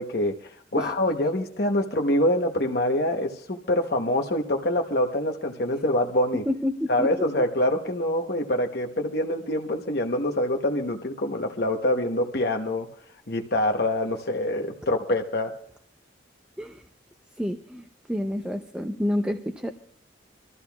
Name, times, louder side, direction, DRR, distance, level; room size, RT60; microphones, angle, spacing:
voice 1, 0.0-6.4 6.9-12.9 13.3-15.6, left 1 dB, 55° left, 2 dB, 1.0 m, -25 dB
voice 2, 6.3-7.1 16.6-16.8 17.4-19.7, left 1 dB, 5° right, 6 dB, 0.6 m, -29 dB
25.5 x 13.5 x 2.3 m, 0.63 s
head